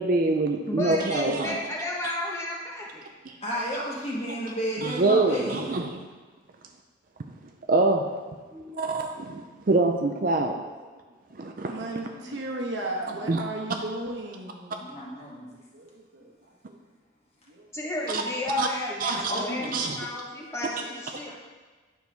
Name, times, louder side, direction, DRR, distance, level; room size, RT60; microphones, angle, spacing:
voice 1, 0.0-1.6 3.3-3.4 4.8-5.9 7.7-8.1 8.8-10.5 11.4-11.8 13.3-13.4 18.1-18.2 18.6-18.7 19.0-19.3 19.7-20.1, right 2 dB, 45° right, 4 dB, 0.5 m, -25 dB
voice 2, 0.7-3.1 8.5-8.9 17.7-19.7 20.0-21.3, left 1 dB, 15° left, -3 dB, 1.1 m, -32 dB
voice 3, 3.4-5.8 11.7-12.4 14.9-15.5 19.3-19.9 21.2-21.3, equal, 30° left, -5 dB, 1.7 m, -33 dB
voice 4, 11.5-14.9 15.5-16.3 16.7-16.8 17.5-17.7 20.1-20.2 21.1-21.2, right 2 dB, 65° right, 0 dB, 1.1 m, -36 dB
9.4 x 6.1 x 3.4 m, 1.3 s
head